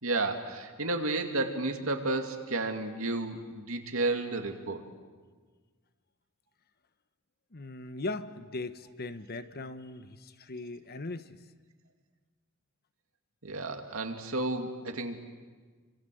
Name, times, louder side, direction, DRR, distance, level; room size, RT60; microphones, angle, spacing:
voice 1, 0.0-4.8 13.4-15.2, right 2 dB, 75° right, 4 dB, 2.6 m, -32 dB
voice 2, 7.5-11.4, left 2 dB, 50° left, 11 dB, 1.1 m, -39 dB
29.0 x 25.5 x 7.8 m, 1.5 s
head